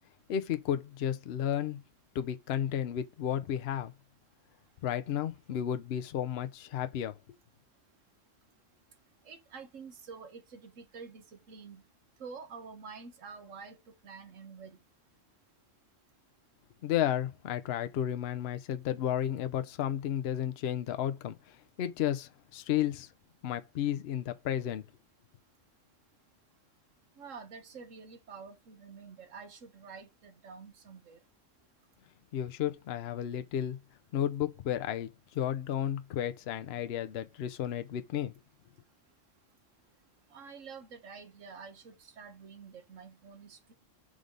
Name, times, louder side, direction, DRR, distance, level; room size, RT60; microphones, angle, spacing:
voice 1, 0.3-1.8 2.1-3.9 4.8-7.2 16.8-23.1 23.4-24.8 32.3-33.8 34.1-38.3, left 10 dB, 60° left, 0.8 m, -33 dB
voice 2, 9.2-11.8 12.2-14.8 27.2-31.2 40.3-43.7, right 5 dB, 80° right, 1.5 m, -48 dB
4.9 x 3.9 x 5.2 m
omnidirectional pair, 1.3 m